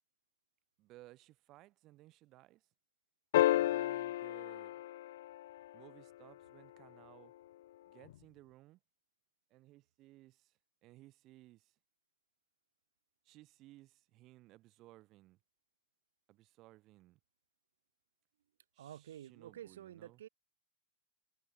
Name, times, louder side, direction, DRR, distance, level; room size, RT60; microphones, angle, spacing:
voice 1, 0.8-2.6 3.5-4.8 5.7-7.3 7.9-8.8 9.5-10.5 10.8-11.7 13.2-15.4 16.3-17.2 18.7-20.2, right 17 dB, 35° right, 3.7 m, -60 dB
sound 1, 3.3-5.9 8.1-8.2, left 14 dB, 55° left, 0.4 m, -32 dB
voice 2, 18.8-20.3, right 11 dB, 60° right, 1.7 m, -50 dB
figure-of-eight pair, 90°, 0 cm